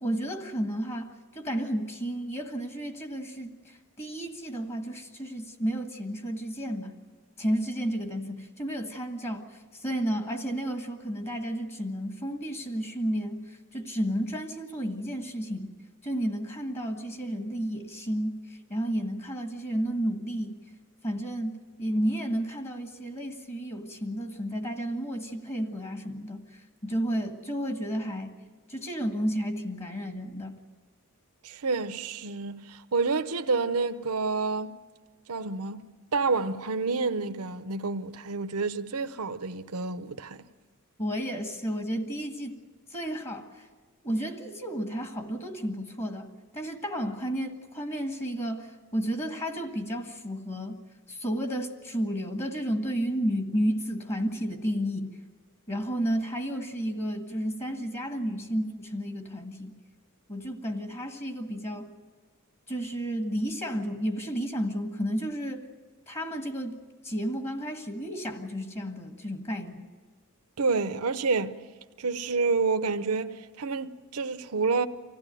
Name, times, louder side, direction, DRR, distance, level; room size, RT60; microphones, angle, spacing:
voice 1, 0.0-7.0 7.4-15.7 16.0-20.6 21.0-21.5 21.8-28.4 28.7-30.6 41.0-42.6 42.9-43.7 44.0-50.8 51.1-55.2 55.7-59.8 60.3-61.9 62.7-65.6 66.1-66.7 67.0-69.9, equal, 30° left, 1.5 m, -32 dB
voice 2, 31.4-34.8 35.3-35.8 36.1-40.4 70.6-71.6 72.0-74.9, right 4 dB, 80° right, 0.8 m, -29 dB
25.0 x 16.0 x 9.1 m
head